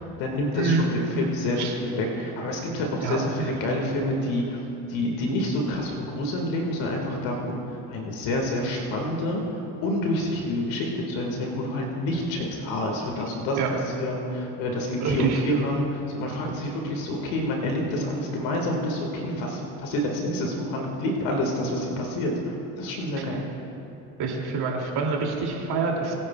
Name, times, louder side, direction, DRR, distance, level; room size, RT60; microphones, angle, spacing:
voice 1, 0.0-4.6 4.9-7.6 7.9-9.4 9.8-23.5, left 1 dB, 65° left, 0 dB, 2.1 m, -28 dB
voice 2, 3.0-3.5 13.6-13.7 15.0-15.4 24.2-26.1, right 4 dB, 50° right, -1 dB, 2.8 m, -26 dB
22.5 x 9.8 x 2.4 m, 2.9 s
hypercardioid pair, 75°, 48 cm